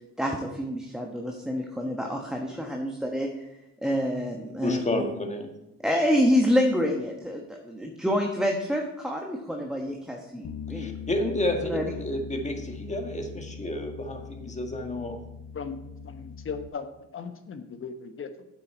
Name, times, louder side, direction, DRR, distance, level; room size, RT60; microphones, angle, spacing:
voice 1, 0.2-3.3 3.8-5.0 5.8-10.9 11.7-11.8, equal, ahead, 0 dB, 1.2 m, -27 dB
voice 2, 4.6-5.5 10.7-15.2, left 1 dB, 25° left, 4 dB, 1.7 m, -30 dB
Bass guitar, 10.4-16.7, left 6 dB, 65° left, 0.9 m, -41 dB
voice 3, 15.5-18.5, left 5 dB, 45° left, 8 dB, 1.1 m, -38 dB
9.1 x 7.7 x 4.5 m, 0.87 s
cardioid pair, 90°, 30 cm